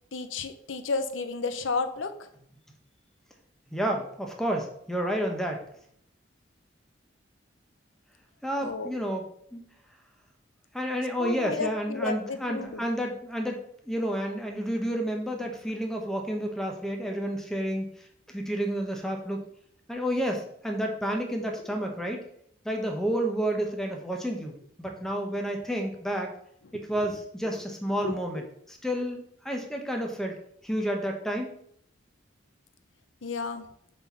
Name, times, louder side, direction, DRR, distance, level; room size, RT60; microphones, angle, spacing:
voice 1, 0.1-2.3 8.6-8.9 11.2-12.8 26.8-27.1 28.0-28.5 33.2-33.6, left 4 dB, 80° left, 9 dB, 0.7 m, -32 dB
voice 2, 3.7-5.6 8.4-9.2 9.5-9.6 10.7-13.6 13.9-17.9 18.3-19.4 19.9-22.2 22.6-24.5 24.8-26.3 26.9-28.4 28.7-30.4 30.6-31.5, equal, ahead, 2 dB, 1.0 m, -30 dB
6.7 x 4.3 x 5.6 m, 0.69 s
head